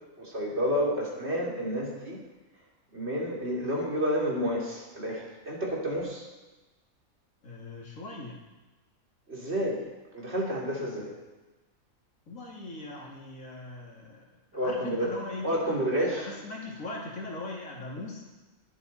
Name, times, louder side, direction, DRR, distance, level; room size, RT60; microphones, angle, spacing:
voice 1, 0.2-2.2 2.9-6.3 9.3-9.8 10.1-11.1 14.5-15.1 15.4-16.3, equal, 50° right, -3 dB, 3.3 m, -30 dB
voice 2, 7.4-8.4 12.3-15.6 16.1-18.3, left 2 dB, 70° left, -3 dB, 2.9 m, -40 dB
23.0 x 8.4 x 4.2 m, 1.2 s
omnidirectional pair, 1.5 m